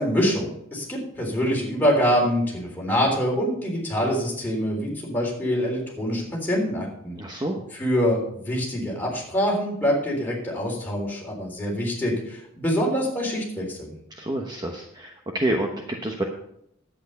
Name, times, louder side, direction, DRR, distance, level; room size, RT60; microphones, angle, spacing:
voice 1, 0.0-7.2 7.8-13.9, equal, 10° left, -3 dB, 3.7 m, -25 dB
voice 2, 7.2-7.6 14.1-16.2, right 1 dB, 20° right, 2 dB, 0.9 m, -28 dB
10.5 x 8.6 x 5.4 m, 0.73 s
head